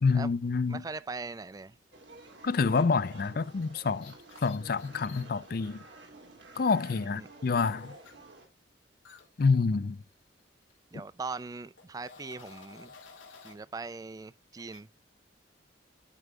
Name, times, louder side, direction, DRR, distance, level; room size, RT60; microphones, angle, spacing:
voice 1, 0.0-0.8 2.4-4.1 4.4-5.8 6.6-7.9 9.4-10.0, left 4 dB, 50° left, 0.4 m, -27 dB
voice 2, 0.7-1.8 7.1-7.3 10.9-12.9 13.4-14.9, right 4 dB, 20° right, 0.3 m, -40 dB
sound 1, 1.9-8.5, right 2 dB, 65° right, 2.3 m, -52 dB
sound 2, 3.6-5.6 7.5-8.1 9.0-10.4 10.7-10.9 11.8-13.6 14.5-14.8, left 5 dB, 85° left, 2.5 m, -53 dB
11.0 x 5.3 x 2.3 m
head